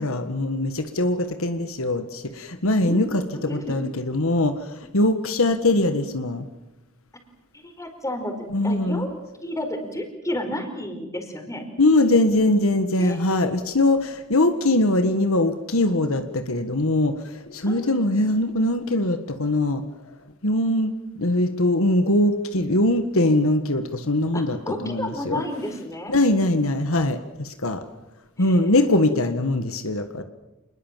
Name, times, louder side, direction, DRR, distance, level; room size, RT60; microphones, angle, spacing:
voice 1, 0.0-6.5 8.5-9.1 11.8-19.8 20.4-24.6 24.8-25.4 26.1-27.8 28.4-30.2, left 1 dB, 65° left, 9 dB, 1.6 m, -22 dB
voice 2, 7.5-9.1 9.4-11.6 13.0-13.3 17.7-17.9 24.3-26.1 28.4-28.6, left 1 dB, 15° left, 5 dB, 4.6 m, -31 dB
27.5 x 21.0 x 7.5 m, 0.99 s
head